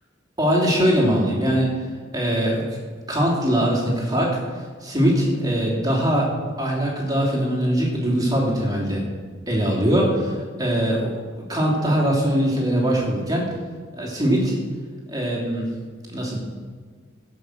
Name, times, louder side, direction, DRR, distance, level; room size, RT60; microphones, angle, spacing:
voice 1, 0.4-1.7 2.1-2.8 3.1-6.3 6.6-9.0 9.5-11.2 11.5-13.4 13.9-14.5 15.1-15.7 16.1-16.4, equal, 20° right, -3 dB, 3.0 m, -21 dB
15.5 x 6.1 x 6.2 m, 1.5 s
head